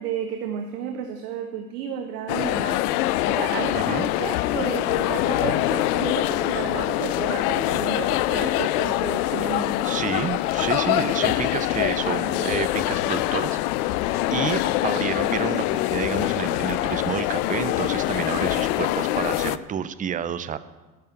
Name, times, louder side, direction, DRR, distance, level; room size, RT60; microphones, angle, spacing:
voice 1, 0.0-2.8 3.3-9.9, right 8 dB, 70° right, 5 dB, 1.2 m, -32 dB
sound 1, 2.3-19.6, left 15 dB, 65° left, 0.6 m, -24 dB
voice 2, 3.7-4.1 9.4-20.6, right 8 dB, 20° right, 13 dB, 0.4 m, -30 dB
10.5 x 6.7 x 8.2 m, 1.2 s
hypercardioid pair, 85°, 49 cm